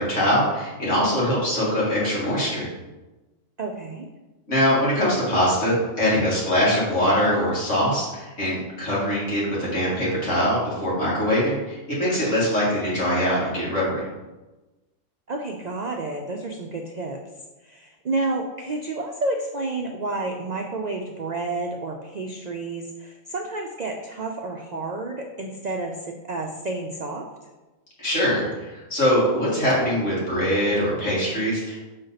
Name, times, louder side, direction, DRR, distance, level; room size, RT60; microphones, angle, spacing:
voice 1, 0.0-2.7 4.5-14.0 28.0-31.8, equal, 60° left, -7 dB, 2.5 m, -22 dB
voice 2, 3.6-4.1 15.3-17.2 17.6-27.3, right 2 dB, 75° right, 2 dB, 0.3 m, -30 dB
6.6 x 4.3 x 4.0 m, 1.1 s
omnidirectional pair, 1.4 m